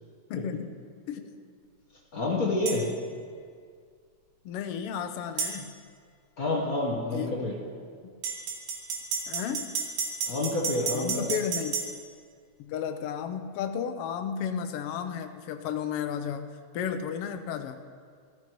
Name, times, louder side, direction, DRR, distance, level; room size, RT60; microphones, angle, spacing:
voice 1, 0.3-0.7 1.1-1.2 4.4-5.7 7.1-7.4 9.3-9.7 10.9-11.7 12.6-17.8, left 8 dB, 75° left, 8 dB, 1.4 m, -33 dB
voice 2, 2.1-3.0 6.4-7.6 10.2-11.3, left 2 dB, 50° left, -2 dB, 1.1 m, -28 dB
sound 1, 2.7-2.8 5.4-5.5 8.2-11.9, right 6 dB, 80° right, 3.3 m, -31 dB
14.0 x 13.5 x 4.6 m, 2.1 s
omnidirectional pair, 3.4 m